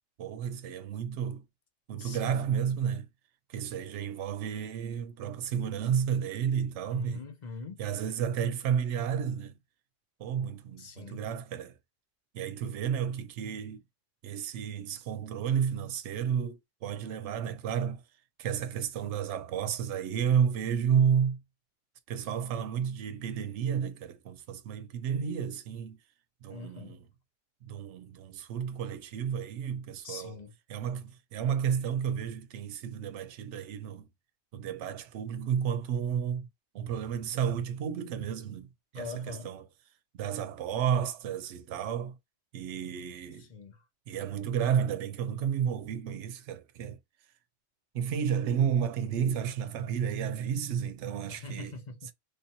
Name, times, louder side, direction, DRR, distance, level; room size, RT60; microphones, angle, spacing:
voice 1, 0.2-1.4 1.9-3.1 3.5-7.2 7.8-9.6 10.2-11.8 12.3-13.8 14.2-18.0 18.4-21.4 22.1-26.0 26.4-27.0 27.6-30.4 30.7-34.1 34.5-36.5 36.7-39.7 40.1-42.2 42.5-43.5 44.1-47.0 47.9-51.7, right 8 dB, 80° right, 0.9 m, -31 dB
voice 2, 2.0-2.5 6.9-7.8 10.8-11.3 26.5-27.0 30.0-30.5 38.9-39.5 43.4-43.8 51.3-52.1, left 4 dB, 45° left, 0.8 m, -43 dB
3.2 x 2.8 x 2.7 m
omnidirectional pair, 1.2 m